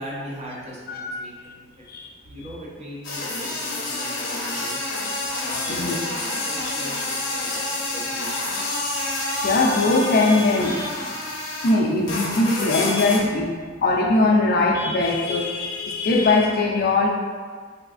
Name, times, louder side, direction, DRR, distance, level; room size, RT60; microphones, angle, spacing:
voice 1, 0.0-1.8 2.2-4.9 5.4-6.2 6.4-8.5, equal, 35° right, -6 dB, 0.7 m, -39 dB
voice 2, 0.9-1.2 1.9-2.1 5.6-6.0 6.6-6.8 9.3-10.9 11.6-13.5 13.8-17.1, left 2 dB, 50° left, 0 dB, 0.4 m, -21 dB
sound 1, 3.0-11.8 12.1-13.2, left 2 dB, 70° left, 0.7 m, -28 dB
3.4 x 3.0 x 2.5 m, 1.5 s
head